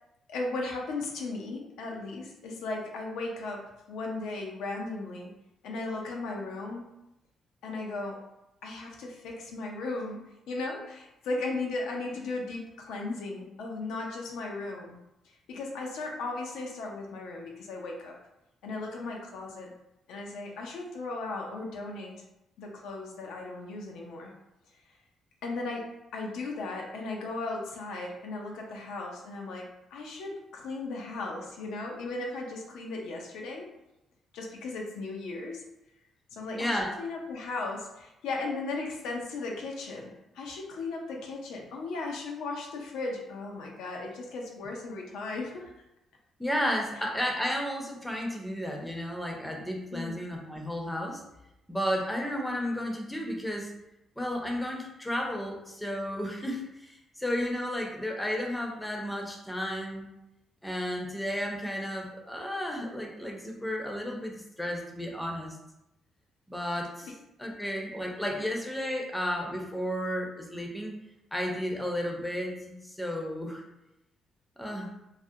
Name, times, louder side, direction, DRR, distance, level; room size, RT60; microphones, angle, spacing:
voice 1, 0.3-5.3 5.6-6.9 7.6-8.2 8.6-15.0 15.5-18.2 18.6-19.7 20.1-22.2 22.6-24.3 25.4-33.7 34.3-35.6 36.3-45.7 49.9-50.2 67.0-67.1, left 3 dB, 85° left, 0 dB, 0.4 m, -36 dB
voice 2, 36.5-36.9 46.4-51.2 51.7-53.7 54.2-60.1 60.6-65.6 66.5-67.1 67.4-70.9 71.3-73.6 74.6-74.9, equal, 5° left, 0 dB, 0.5 m, -33 dB
2.4 x 2.0 x 2.7 m, 0.89 s
cardioid pair, 90°, 0 cm